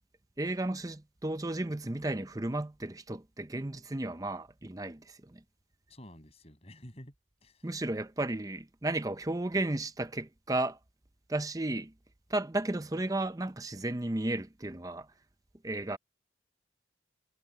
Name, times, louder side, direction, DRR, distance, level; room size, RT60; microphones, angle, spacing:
voice 1, 0.4-5.4 7.6-10.8 11.3-11.9 12.3-15.1 15.6-16.0, right 2 dB, 20° right, 0.6 m, -33 dB
voice 2, 5.9-7.1 7.4-7.7, equal, 35° left, 6.9 m, -50 dB
head